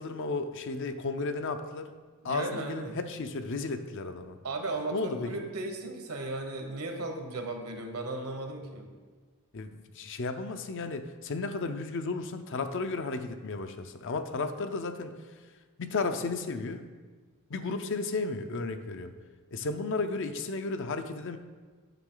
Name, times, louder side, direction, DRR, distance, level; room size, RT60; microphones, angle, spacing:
voice 1, 0.0-1.9 2.2-4.4 4.9-5.5 9.5-15.1 15.8-16.9 17.5-19.1 19.5-21.4, left 3 dB, 60° left, 8 dB, 0.6 m, -34 dB
voice 2, 2.2-2.9 4.4-8.9, right 2 dB, 75° right, 4 dB, 1.2 m, -36 dB
9.1 x 6.5 x 3.9 m, 1.4 s
head